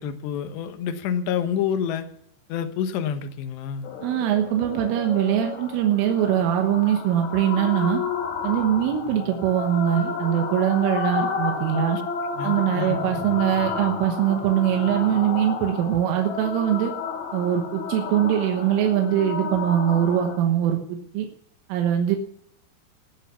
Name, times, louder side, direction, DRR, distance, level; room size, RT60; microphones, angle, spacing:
voice 1, 0.0-2.1 2.5-3.9 11.7-11.9 12.4-13.0, left 8 dB, 70° left, 8 dB, 3.1 m, -28 dB
sound 1, 3.8-20.4, left 6 dB, 55° left, 2.3 m, -31 dB
voice 2, 4.0-8.0 8.4-12.0 12.4-16.9 17.3-21.3 21.7-22.2, right 10 dB, 90° right, 3 dB, 3.8 m, -22 dB
19.5 x 6.6 x 6.9 m, 0.71 s
omnidirectional pair, 5.6 m